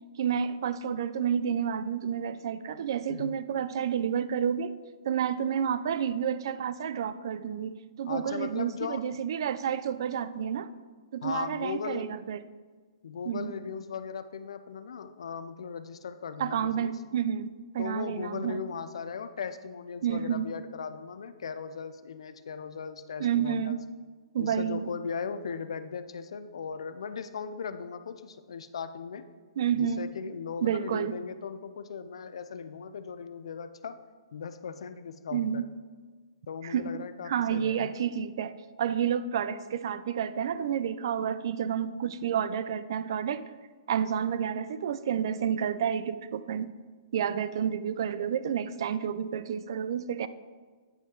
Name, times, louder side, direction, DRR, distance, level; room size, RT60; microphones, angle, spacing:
voice 1, 0.2-4.8 5.0-10.7 11.1-12.4 13.3-13.5 16.4-18.6 20.0-20.5 23.2-23.8 24.3-24.9 29.6-30.1 30.6-31.2 35.3-35.6 36.6-37.0 37.3-38.5 38.8-43.5 43.9-46.7 47.1-50.3, right 8 dB, 50° right, 14 dB, 0.3 m, -30 dB
voice 2, 8.0-9.0 11.2-12.1 13.0-16.9 17.8-23.8 24.4-29.2 29.7-34.0 34.3-35.6 36.5-37.9, left 6 dB, 75° left, 11 dB, 0.5 m, -38 dB
8.7 x 5.4 x 3.7 m, 1.5 s
hypercardioid pair, 165°, 3 cm